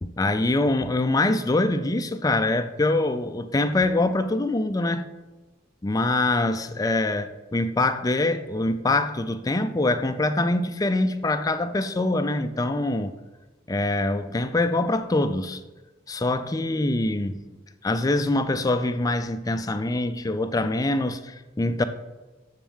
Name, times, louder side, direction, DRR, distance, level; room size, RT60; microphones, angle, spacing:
voice 1, 0.0-5.0 5.8-13.1 13.7-15.6 16.1-17.4 17.8-21.8, left 2 dB, 20° left, 0.4 m, -24 dB
7.2 x 6.7 x 6.3 m
head